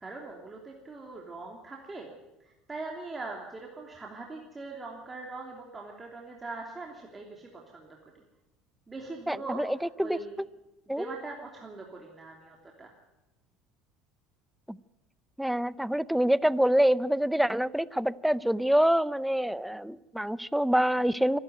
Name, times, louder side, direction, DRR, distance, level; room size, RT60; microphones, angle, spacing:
voice 1, 0.0-2.1 2.4-8.2 8.9-10.4 10.9-12.9, right 3 dB, 20° right, -1 dB, 3.1 m, -42 dB
voice 2, 9.3-10.2 10.9-11.1 14.7-14.8 15.4-21.4, equal, ahead, 18 dB, 0.6 m, -26 dB
25.5 x 11.5 x 9.3 m, 1.0 s
supercardioid pair, 105°, 0 cm